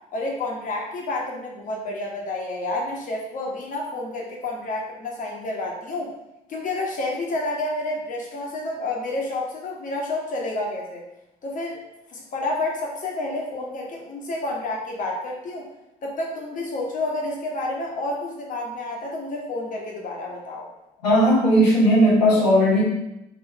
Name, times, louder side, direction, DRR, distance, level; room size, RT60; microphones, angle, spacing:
voice 1, 0.1-6.1 6.5-11.0 11.4-11.8 12.1-15.7 16.0-20.7, left 2 dB, 40° left, -2 dB, 1.2 m, -29 dB
voice 2, 21.0-22.8, equal, 80° left, -6 dB, 0.9 m, -17 dB
4.1 x 3.0 x 4.2 m, 0.88 s
figure-of-eight pair, 55°, 21 cm